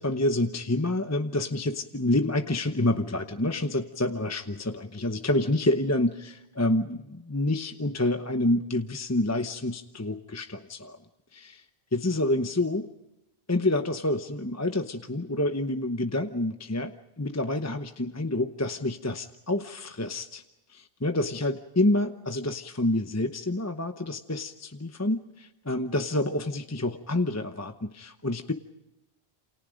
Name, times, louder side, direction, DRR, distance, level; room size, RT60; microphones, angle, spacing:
voice 1, 0.0-11.0 11.3-11.6 11.9-12.9 13.5-20.4 20.7-28.5, left 1 dB, 15° left, 7 dB, 0.9 m, -28 dB
28.5 x 28.0 x 5.2 m, 0.94 s
omnidirectional pair, 1.1 m